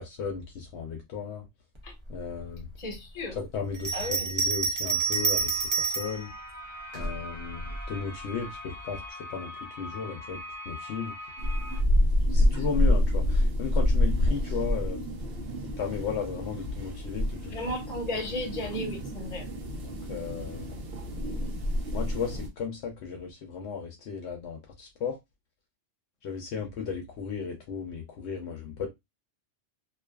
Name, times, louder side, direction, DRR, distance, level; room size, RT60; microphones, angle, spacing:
voice 1, 0.0-1.5 2.1-2.7 3.4-6.3 6.9-11.1 12.3-15.1 15.8-17.5 18.1-18.3 19.8-20.8 21.9-25.2 26.2-28.9, left 6 dB, 75° left, 0.8 m, -35 dB
voice 2, 2.8-3.4 3.9-4.3 17.5-19.4, left 1 dB, 40° left, 0.9 m, -34 dB
Bell, 3.7-6.2 6.9-7.9, right 4 dB, 35° right, 0.5 m, -28 dB
sound 1, 4.9-11.8, left 1 dB, 5° left, 1.0 m, -42 dB
sound 2, 11.4-22.5, left 1 dB, 65° right, 0.8 m, -27 dB
2.5 x 2.3 x 2.2 m
omnidirectional pair, 1.2 m